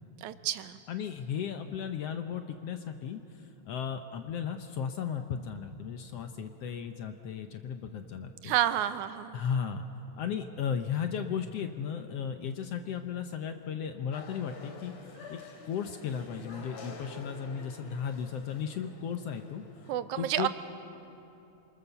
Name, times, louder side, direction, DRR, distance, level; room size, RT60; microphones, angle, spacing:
voice 1, 0.2-0.8 8.4-9.4 19.9-20.5, right 12 dB, 80° right, 12 dB, 2.2 m, -30 dB
voice 2, 0.9-8.5 9.3-9.8 10.2-14.9 15.3-15.4 15.6-19.6 20.2-20.5, left 7 dB, 70° left, 6 dB, 1.6 m, -35 dB
sound 1, 14.1-20.0, left 4 dB, 85° left, 3.7 m, -48 dB
27.5 x 24.5 x 6.9 m, 2.8 s
omnidirectional pair, 3.4 m